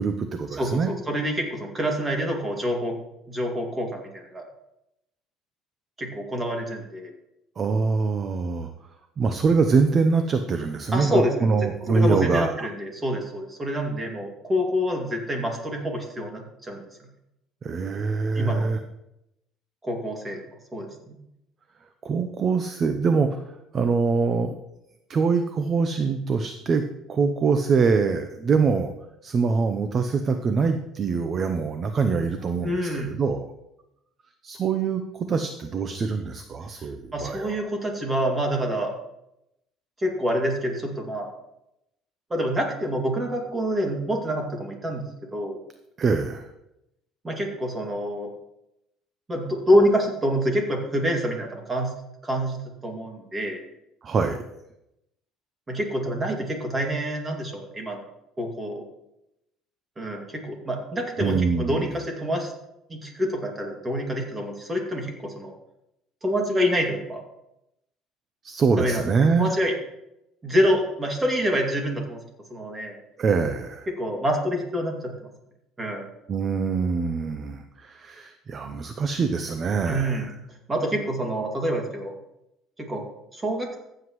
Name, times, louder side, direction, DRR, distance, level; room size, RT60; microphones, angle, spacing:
voice 1, 0.0-0.9 7.6-8.7 9.2-12.7 17.6-18.8 22.0-23.4 23.7-24.5 25.1-26.8 27.1-28.9 29.2-33.5 34.4-37.6 46.0-46.5 54.0-54.4 61.2-61.9 68.4-69.5 73.2-73.9 76.3-80.2, right 5 dB, 35° right, 7 dB, 0.7 m, -24 dB
voice 2, 0.6-3.0 3.3-4.4 6.0-7.1 10.9-11.6 11.9-17.1 18.3-18.7 19.8-20.4 20.7-21.2 32.6-33.2 36.8-38.9 40.0-41.3 42.3-45.6 47.2-48.3 49.3-51.9 52.2-53.6 55.7-58.0 58.4-58.8 60.0-62.5 62.9-65.5 66.2-67.2 68.8-69.7 70.4-72.2 72.5-73.0 73.9-75.3 75.8-76.1 79.9-80.3 80.7-82.2 82.8-83.0 83.3-83.8, equal, 20° right, 1 dB, 2.4 m, -27 dB
15.0 x 7.9 x 3.1 m, 0.84 s
cardioid pair, 130°, 0 cm